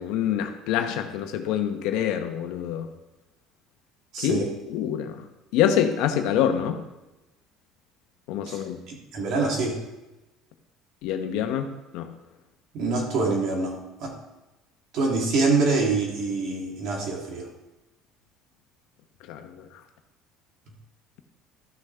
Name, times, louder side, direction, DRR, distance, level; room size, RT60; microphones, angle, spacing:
voice 1, 0.0-2.9 4.2-5.2 5.5-6.8 8.3-8.8 11.0-12.1 19.3-19.6, left 9 dB, 75° left, 7 dB, 0.9 m, -26 dB
voice 2, 4.1-4.5 8.5-9.8 12.7-14.2 14.9-17.5, right 3 dB, 65° right, 0 dB, 2.4 m, -25 dB
13.5 x 6.3 x 3.4 m, 1.0 s
supercardioid pair, 90°, 0 cm